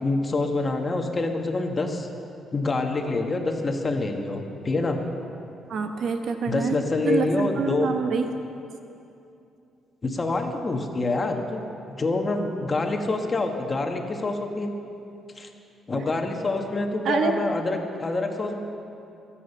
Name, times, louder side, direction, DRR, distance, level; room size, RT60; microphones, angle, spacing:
voice 1, 0.0-2.1 2.5-5.0 6.5-7.9 10.0-14.7 15.3-15.5 15.9-18.6, left 3 dB, 30° left, 3 dB, 1.6 m, -26 dB
voice 2, 5.7-6.8 7.0-8.3 17.0-17.3, right 5 dB, 65° right, 6 dB, 1.1 m, -26 dB
23.0 x 8.9 x 5.7 m, 2.7 s
cardioid pair, 90°, 0 cm